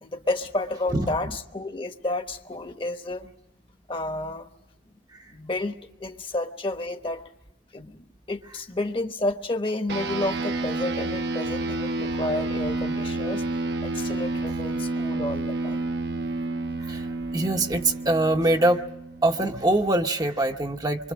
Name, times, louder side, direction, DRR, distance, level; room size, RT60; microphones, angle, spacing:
voice 1, 0.0-3.3 3.9-4.5 5.3-5.7 6.0-7.2 7.7-13.4 13.8-15.9, left 2 dB, 30° left, 8 dB, 1.1 m, -31 dB
sound 1, 9.9-19.6, right 2 dB, 60° right, 0.9 m, -30 dB
voice 2, 17.3-18.8 19.2-21.1, right 1 dB, 20° right, 4 dB, 0.8 m, -23 dB
25.5 x 24.5 x 6.3 m, 0.87 s
head